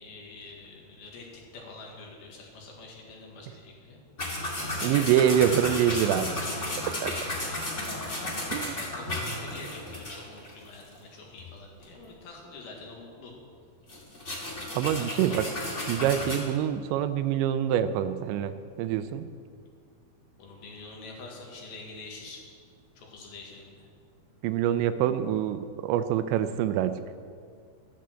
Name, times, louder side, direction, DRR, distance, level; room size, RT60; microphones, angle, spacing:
voice 1, 0.0-4.0 8.7-13.3 15.0-15.4 20.4-22.4 23.0-23.9, left 3 dB, 65° left, -1 dB, 3.5 m, -46 dB
sound 1, 4.2-11.0 11.4-11.5 11.8-12.0 13.9-16.4, left 1 dB, 25° left, 1.6 m, -33 dB
voice 2, 4.8-6.3 6.9-7.3 8.5-8.8 14.8-15.5 15.9-19.3 24.4-27.0, right 10 dB, 85° right, 11 dB, 2.9 m, -26 dB
12.0 x 10.5 x 7.7 m, 2.1 s
omnidirectional pair, 5.1 m